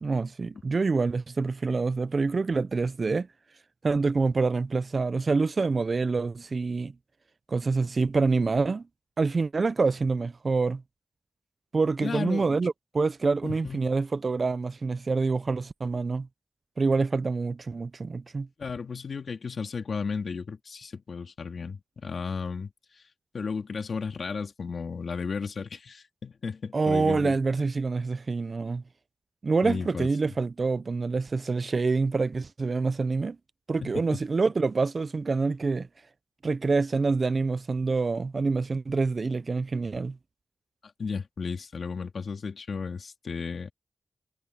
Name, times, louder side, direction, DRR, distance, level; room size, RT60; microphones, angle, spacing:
voice 1, 0.0-3.3 3.8-6.9 7.5-8.8 9.2-10.8 11.7-16.3 16.8-18.5 26.7-28.8 29.4-33.4 33.7-35.9 36.4-40.2, right 4 dB, 50° right, 0.5 m, -26 dB
voice 2, 12.0-12.6 13.4-13.8 18.6-22.7 23.3-27.4 29.6-30.1 33.8-34.2 41.0-43.7, left 5 dB, 65° left, 2.8 m, -34 dB
cardioid pair, 65°, 0 cm